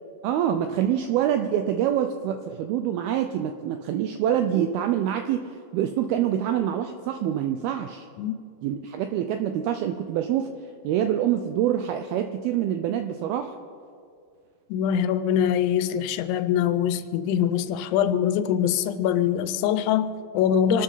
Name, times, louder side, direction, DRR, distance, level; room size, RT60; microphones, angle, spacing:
voice 1, 0.2-8.1 8.6-10.5 10.8-13.5 20.7-20.8, right 10 dB, 90° right, 7 dB, 2.1 m, -26 dB
voice 2, 14.7-20.8, left 9 dB, 90° left, 11 dB, 3.0 m, -23 dB
25.5 x 12.5 x 4.0 m, 2.3 s
omnidirectional pair, 5.1 m